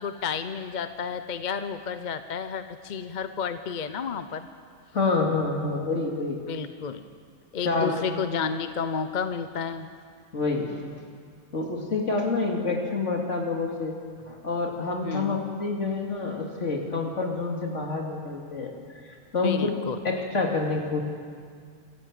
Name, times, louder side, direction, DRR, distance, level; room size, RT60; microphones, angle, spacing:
voice 1, 0.0-4.5 6.5-7.1 7.5-9.9 15.0-15.5 19.4-20.0, left 6 dB, 45° left, 10 dB, 0.7 m, -31 dB
voice 2, 4.9-6.4 7.6-8.0 10.3-11.0 11.5-14.0 14.3-18.7 19.0-19.8 20.0-21.0, left 3 dB, 60° left, 0 dB, 2.8 m, -27 dB
26.0 x 13.0 x 7.6 m, 2.1 s
omnidirectional pair, 1.4 m